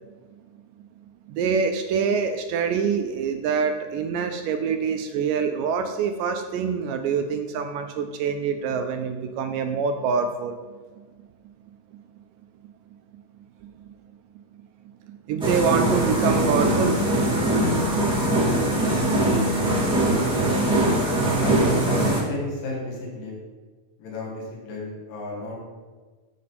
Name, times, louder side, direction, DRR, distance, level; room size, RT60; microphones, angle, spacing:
voice 1, 1.3-10.6 13.6-13.9 15.1-17.3, right 6 dB, 80° right, 6 dB, 2.0 m, -25 dB
sound 1, 15.4-22.2, right 1 dB, 5° right, 0.4 m, -22 dB
voice 2, 21.4-23.4 24.0-25.5, left 2 dB, 70° left, -4 dB, 3.3 m, -32 dB
7.4 x 7.1 x 4.1 m, 1.4 s
omnidirectional pair, 4.2 m